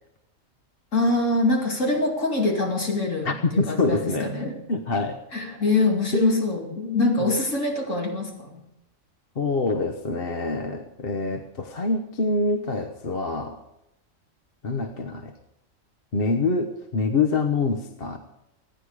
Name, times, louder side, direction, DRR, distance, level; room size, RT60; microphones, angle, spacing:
voice 1, 0.9-4.5 5.3-8.6, left 2 dB, 70° left, 0 dB, 2.9 m, -24 dB
voice 2, 3.2-4.3 4.7-5.2 6.1-6.8 9.4-13.6 14.6-15.3 16.1-18.2, left 3 dB, 45° left, 5 dB, 1.3 m, -25 dB
25.5 x 10.0 x 4.9 m, 0.83 s
omnidirectional pair, 1.4 m